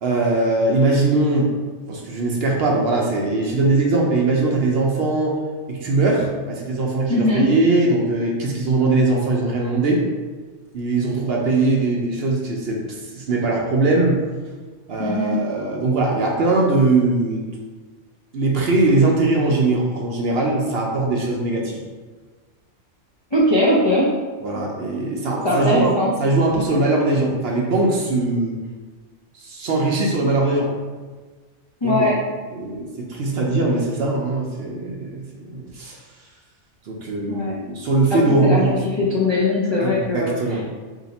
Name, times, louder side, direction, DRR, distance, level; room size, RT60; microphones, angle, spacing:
voice 1, 0.0-1.5 1.9-5.3 5.7-10.0 10.7-14.2 14.9-17.5 18.3-21.8 24.4-25.9 26.2-28.6 29.4-30.7 31.8-32.1 32.5-36.0 36.9-38.7 39.0-39.1 39.8-40.6, right 2 dB, 60° right, -1 dB, 0.8 m, -20 dB
voice 2, 7.1-7.4 15.0-15.4 23.3-24.1 25.4-26.1 31.8-32.2 37.3-37.5 38.1-40.4, left 1 dB, 45° left, -7 dB, 0.3 m, -20 dB
2.8 x 2.5 x 4.0 m, 1.4 s
omnidirectional pair, 1.3 m